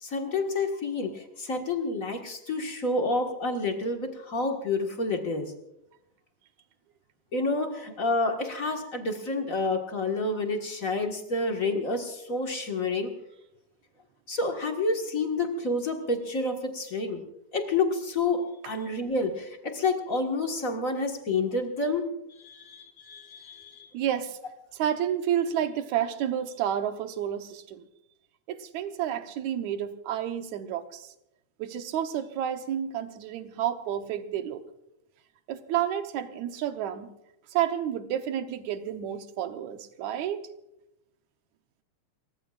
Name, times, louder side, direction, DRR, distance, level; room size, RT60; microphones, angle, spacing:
voice 1, 0.0-5.5 7.3-13.1 14.3-17.2 17.5-22.1 22.4-23.9, left 3 dB, 35° left, 3 dB, 1.4 m, -29 dB
voice 2, 23.9-24.4 24.8-27.8 28.5-31.1 31.6-34.6 35.5-37.1 37.5-40.4, right 10 dB, 70° right, 8 dB, 2.2 m, -30 dB
29.5 x 15.0 x 2.5 m, 0.85 s
omnidirectional pair, 3.7 m